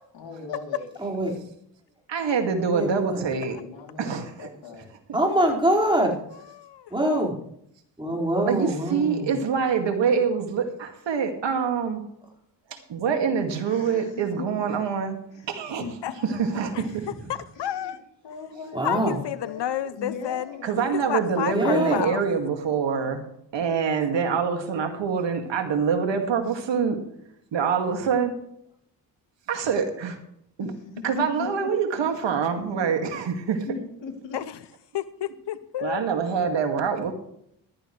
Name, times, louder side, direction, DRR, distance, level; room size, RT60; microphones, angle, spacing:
voice 1, 0.1-0.9 3.3-4.9 13.6-14.5 15.3-15.5 15.8-16.4 17.5-17.9 18.2-19.7 19.9-20.8 21.3-22.3 30.6-31.7 33.6-34.4, left 5 dB, 85° left, 1 dB, 3.2 m, -39 dB
voice 2, 1.0-1.3 2.6-3.3 5.1-6.2 6.9-7.3 8.0-9.3 18.7-19.2 21.5-22.1, right 1 dB, 10° right, -2 dB, 4.8 m, -24 dB
voice 3, 2.1-3.6 4.0-4.5 4.8-5.2 8.4-12.0 12.7-15.2 15.5-17.1 20.6-23.2 23.5-27.0 27.5-28.3 29.5-30.2 30.6-30.7 31.0-33.8 35.8-37.1, right 6 dB, 75° right, 5 dB, 2.2 m, -25 dB
voice 4, 6.5-6.9 16.0-16.2 16.7-16.8 17.3-18.0 18.8-20.6 20.9-22.2 34.3-34.4 34.9-36.0, left 11 dB, 70° left, 14 dB, 0.7 m, -30 dB
14.5 x 13.0 x 3.2 m, 0.73 s
cardioid pair, 80°, 44 cm